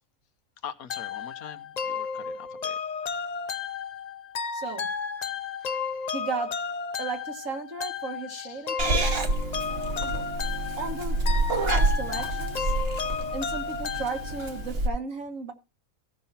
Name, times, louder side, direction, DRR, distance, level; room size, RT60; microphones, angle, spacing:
voice 1, 0.6-2.8 8.3-8.7, left 8 dB, 85° left, 1.3 m, -43 dB
sound 1, 0.9-14.7, left 6 dB, 60° left, 0.4 m, -33 dB
voice 2, 4.5-4.9 6.1-6.5 7.0-9.1 10.0-10.2 10.8-11.2 11.5-12.7 13.3-15.5, right 4 dB, 65° right, 1.9 m, -35 dB
Purr / Meow, 8.8-14.9, right 2 dB, 45° right, 1.4 m, -28 dB
16.0 x 5.7 x 4.1 m
omnidirectional pair, 1.5 m